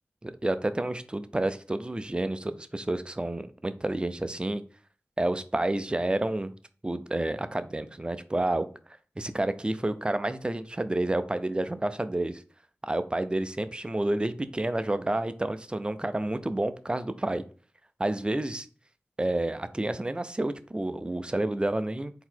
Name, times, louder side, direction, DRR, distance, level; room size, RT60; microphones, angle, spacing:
voice 1, 0.2-4.6 5.2-6.5 6.8-8.6 9.2-12.4 12.8-17.4 18.0-18.7 19.2-22.1, right 1 dB, 20° right, 11 dB, 0.4 m, -29 dB
3.9 x 2.8 x 4.4 m, 0.40 s
wide cardioid pair, 65°, 5 cm